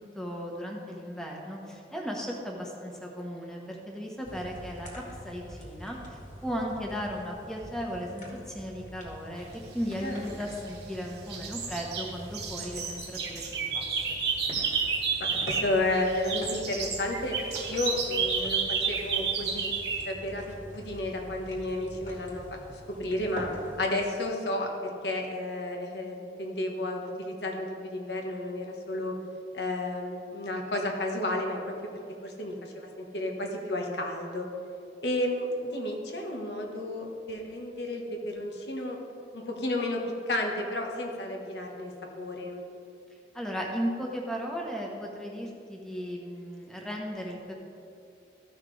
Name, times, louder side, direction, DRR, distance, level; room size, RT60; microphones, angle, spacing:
voice 1, 0.1-4.9 5.2-9.5 9.7-14.2 43.3-47.5, equal, 5° left, -1 dB, 1.1 m, -36 dB
sound 1, 4.2-23.8, equal, 45° left, 2.0 m, -45 dB
sound 2, 10.2-11.0 11.3-15.8 16.1-20.1, right 5 dB, 70° right, 1.1 m, -31 dB
voice 2, 15.2-17.3 17.7-18.6 18.9-19.7 20.0-23.5 23.8-29.1 29.5-31.6 32.2-34.4 35.0-39.0 39.3-42.6, left 1 dB, 75° left, 1 dB, 1.2 m, -32 dB
14.0 x 5.8 x 3.3 m, 2.6 s
head